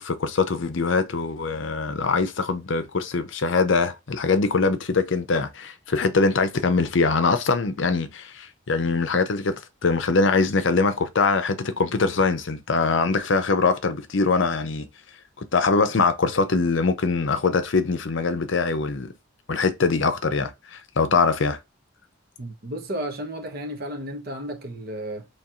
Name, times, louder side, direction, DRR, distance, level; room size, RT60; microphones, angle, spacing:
voice 1, 0.0-14.8 15.4-19.1 19.5-21.6, left 4 dB, 65° left, 0.6 m, -23 dB
voice 2, 22.4-25.3, right 1 dB, 45° right, 1.0 m, -33 dB
4.5 x 3.1 x 2.5 m
head